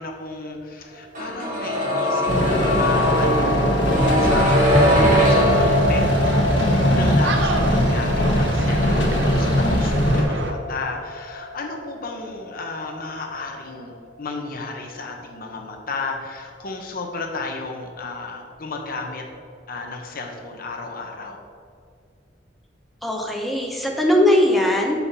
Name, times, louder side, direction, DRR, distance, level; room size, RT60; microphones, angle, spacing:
voice 1, 0.0-3.8 4.2-19.2 19.7-21.4, left 3 dB, 55° left, 2 dB, 1.0 m, -33 dB
sound 1, 1.1-13.0 13.3-13.4, equal, 45° right, 1.9 m, -23 dB
sound 2, 2.3-10.2, equal, 85° left, 1.4 m, -21 dB
sound 3, 4.3-10.5, right 2 dB, 70° right, 0.7 m, -29 dB
voice 2, 23.0-25.0, left 1 dB, ahead, -1 dB, 0.8 m, -19 dB
7.4 x 5.8 x 4.1 m, 2.3 s
head